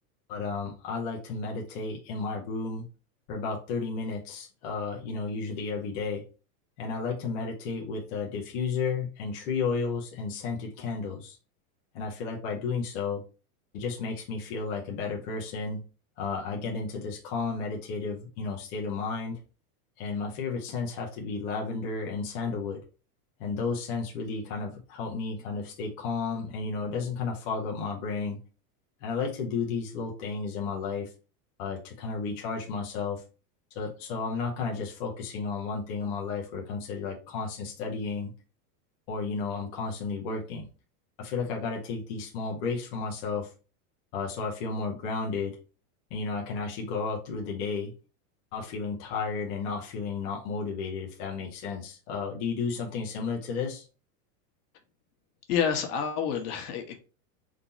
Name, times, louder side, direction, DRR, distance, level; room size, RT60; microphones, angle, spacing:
voice 1, 0.3-2.9 3.3-6.3 6.8-11.4 11.9-13.2 13.7-15.8 16.2-19.4 20.0-22.8 23.4-28.4 29.0-31.1 31.6-33.2 33.7-38.3 39.1-40.7 41.2-43.5 44.1-45.6 46.1-47.9 48.5-53.8, left 4 dB, 25° left, 0.5 m, -33 dB
voice 2, 55.5-56.9, left 7 dB, 70° left, 1.2 m, -28 dB
3.8 x 2.8 x 3.9 m
supercardioid pair, 175°, 47 cm